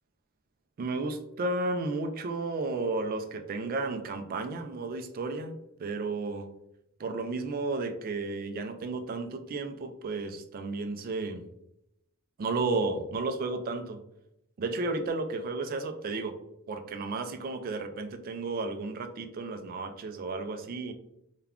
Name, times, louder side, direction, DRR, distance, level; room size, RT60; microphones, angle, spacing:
voice 1, 0.8-6.5 7.0-11.4 12.4-14.0 14.6-16.4 16.7-20.9, right 3 dB, 45° right, 7 dB, 0.3 m, -33 dB
2.3 x 2.2 x 3.5 m, 0.81 s
head